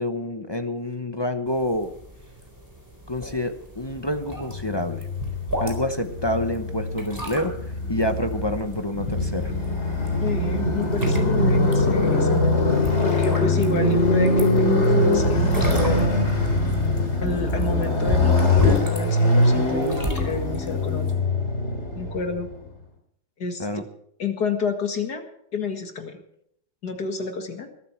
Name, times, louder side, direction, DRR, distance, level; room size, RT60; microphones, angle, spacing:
voice 1, 0.0-1.9 3.1-5.1 5.6-7.5 7.9-9.5 23.6-23.8, left 1 dB, 20° left, 7 dB, 0.7 m, -27 dB
sound 1, 1.5-21.1, equal, 10° right, 3.9 m, -35 dB
Motorcycle, 4.4-22.5, left 1 dB, 35° left, 3.1 m, -22 dB
voice 2, 10.2-16.2 17.2-21.1 21.9-22.5 23.4-23.8 24.2-25.2 25.5-26.2 26.8-27.7, left 4 dB, 60° left, 5 dB, 2.4 m, -29 dB
21.5 x 12.5 x 4.5 m, 0.71 s
omnidirectional pair, 2.0 m